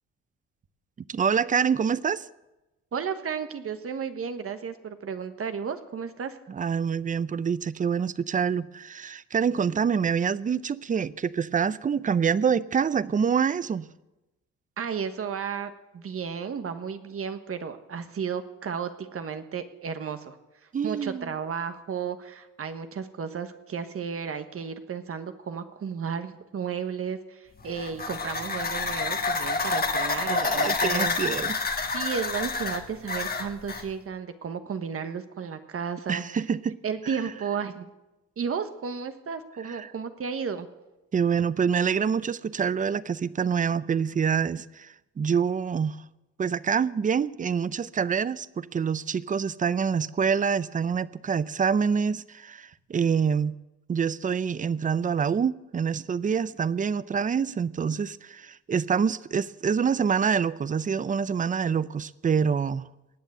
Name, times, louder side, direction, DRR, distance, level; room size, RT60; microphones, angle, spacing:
voice 1, 1.1-2.3 6.5-13.8 20.7-21.3 30.3-31.6 36.1-36.8 39.7-39.9 41.1-46.0 46.4-53.5 53.9-62.9, right 6 dB, 25° right, 0.5 m, -26 dB
voice 2, 2.9-6.4 14.8-20.4 20.8-31.2 31.9-36.2 36.8-37.9 38.4-40.7, right 6 dB, 50° right, 1.3 m, -33 dB
sound 1, 27.6-33.9, left 4 dB, 30° left, 1.6 m, -28 dB
19.5 x 7.4 x 7.9 m
cardioid pair, 90°, 30 cm